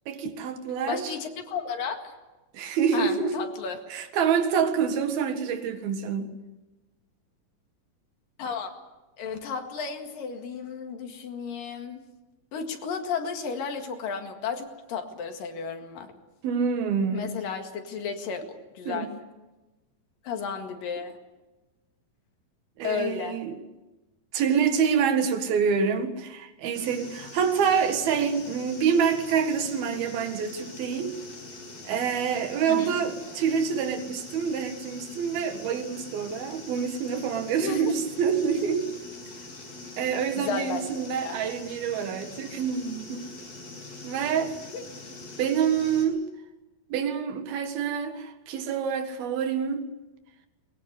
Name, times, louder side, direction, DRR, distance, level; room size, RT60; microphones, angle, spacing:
voice 1, 0.1-1.1 2.5-3.4 3.9-6.3 16.4-17.3 18.9-19.1 22.8-23.5 24.3-31.2 31.9-38.9 40.0-43.3 44.0-44.5 45.4-46.2 46.9-49.9, right 7 dB, 80° right, 3.6 m, -27 dB
voice 2, 0.9-2.1 2.9-3.8 8.4-8.7 9.2-12.1 12.5-16.1 17.1-18.5 18.8-19.1 20.3-21.2 22.8-23.4 32.7-33.0 37.6-37.9 40.4-40.9 41.2-41.4 44.7-44.8, left 6 dB, 70° left, 3.6 m, -33 dB
sound 1, 26.7-46.1, left 2 dB, 90° left, 7.8 m, -43 dB
22.5 x 21.5 x 8.2 m
omnidirectional pair, 4.2 m